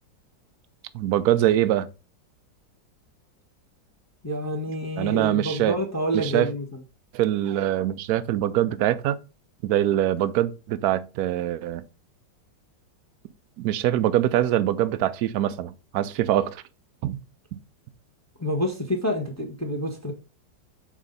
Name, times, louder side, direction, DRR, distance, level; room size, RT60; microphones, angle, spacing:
voice 1, 0.9-1.9 5.0-5.7 6.1-6.5 7.1-9.2 9.6-11.8 13.6-16.6 17.0-17.2 17.5-17.6, right 12 dB, 70° right, 0.9 m, -23 dB
voice 2, 4.2-6.8 18.4-20.1, equal, 10° left, 0.8 m, -28 dB
6.3 x 4.1 x 3.9 m
omnidirectional pair, 1.9 m